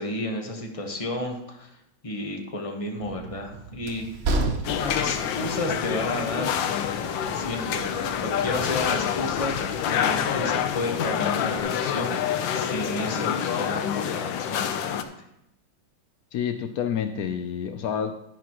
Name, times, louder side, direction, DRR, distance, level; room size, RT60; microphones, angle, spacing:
voice 1, 0.0-1.7 2.0-4.0 4.7-15.1, left 1 dB, 20° left, 2 dB, 1.1 m, -32 dB
Train, 3.0-11.6, right 2 dB, 65° right, 0.6 m, -35 dB
sound 1, 4.6-15.0, left 9 dB, 70° left, 1.4 m, -27 dB
voice 2, 16.3-18.2, left 8 dB, 90° left, 8 dB, 0.7 m, -28 dB
10.5 x 10.5 x 3.0 m, 0.81 s
omnidirectional pair, 2.2 m